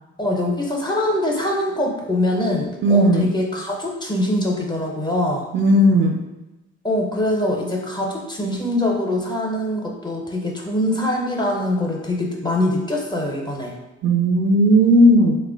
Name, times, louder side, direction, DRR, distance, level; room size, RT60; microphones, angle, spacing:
voice 1, 0.2-5.5 6.8-13.7, left 1 dB, 15° left, -1 dB, 0.6 m, -23 dB
voice 2, 2.8-3.3 5.5-6.2 14.0-15.4, equal, 40° right, 1 dB, 0.5 m, -15 dB
2.8 x 2.2 x 3.7 m, 1.0 s
cardioid pair, 90°, 30 cm